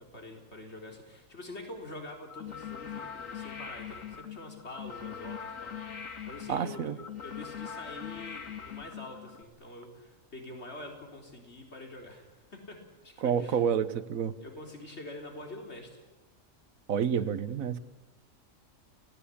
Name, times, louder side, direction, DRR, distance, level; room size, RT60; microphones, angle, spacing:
voice 1, 0.0-6.9 7.2-13.6 14.4-16.0 17.1-17.5, left 1 dB, 50° left, 2 dB, 4.2 m, -46 dB
sound 1, 2.3-9.4, left 7 dB, 70° left, 2.2 m, -42 dB
voice 2, 6.5-7.0 13.2-14.3 16.9-17.8, right 8 dB, 80° right, 14 dB, 1.4 m, -29 dB
29.5 x 18.0 x 8.6 m, 1.2 s
omnidirectional pair, 1.4 m